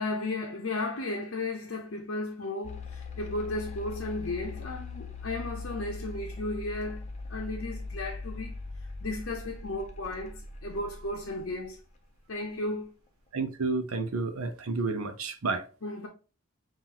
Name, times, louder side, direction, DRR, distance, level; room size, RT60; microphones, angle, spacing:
voice 1, 0.0-7.0 7.3-8.6 9.0-11.8 12.3-12.9 15.8-16.1, left 2 dB, 65° left, 0.8 m, -34 dB
sound 1, 2.6-11.8, left 3 dB, 30° left, 0.6 m, -40 dB
voice 2, 13.3-15.6, right 3 dB, 85° right, 0.7 m, -30 dB
5.6 x 2.6 x 2.9 m
head